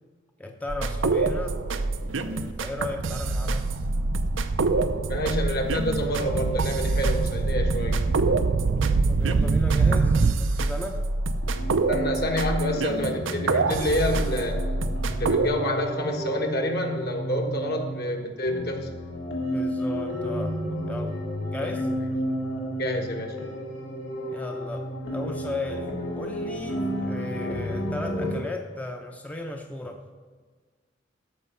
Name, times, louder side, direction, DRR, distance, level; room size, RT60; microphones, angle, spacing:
voice 1, 0.4-1.6 2.0-3.7 9.1-11.0 19.5-20.6 20.9-21.2 21.5-21.9 24.3-30.0, left 2 dB, 10° left, 3 dB, 0.6 m, -36 dB
sound 1, 0.7-15.5, right 3 dB, 90° right, 0.7 m, -27 dB
sound 2, 1.3-10.4, right 4 dB, 45° right, 0.3 m, -26 dB
voice 2, 5.1-8.0 11.9-14.6 15.1-18.9 21.6-21.7 22.8-23.3, left 1 dB, 55° left, 3 dB, 1.4 m, -28 dB
sound 3, 11.4-28.4, equal, 75° left, 2.4 m, -32 dB
13.5 x 5.6 x 5.6 m, 1.5 s
head